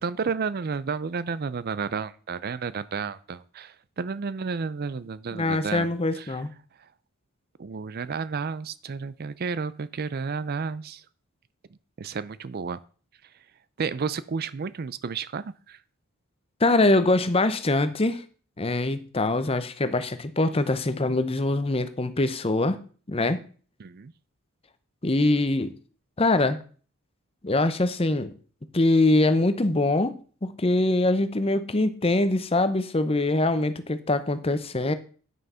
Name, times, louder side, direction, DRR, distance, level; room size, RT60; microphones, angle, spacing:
voice 1, 0.0-6.4 7.6-11.0 12.0-12.8 13.8-15.8 23.8-24.1, right 5 dB, 45° right, 17 dB, 0.4 m, -32 dB
voice 2, 5.3-6.5 16.6-18.2 18.6-22.8 23.1-23.4 25.0-25.7 26.2-26.6 27.4-28.3 28.7-30.2 30.4-34.9, left 2 dB, 25° left, 12 dB, 0.7 m, -23 dB
9.3 x 6.3 x 5.6 m, 0.41 s
head